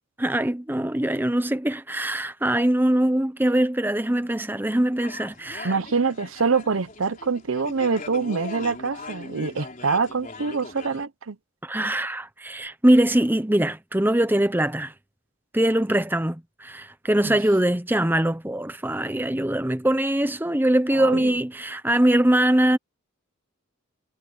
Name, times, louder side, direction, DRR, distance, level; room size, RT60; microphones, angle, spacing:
voice 1, 0.2-5.8 11.6-14.9 15.5-22.8, right 1 dB, 10° right, 0.7 m, -22 dB
sound 1, 5.0-11.0, left 3 dB, 40° left, 4.0 m, -40 dB
voice 2, 5.6-11.4 17.2-17.4 20.9-21.3, right 4 dB, 70° right, 0.8 m, -25 dB
head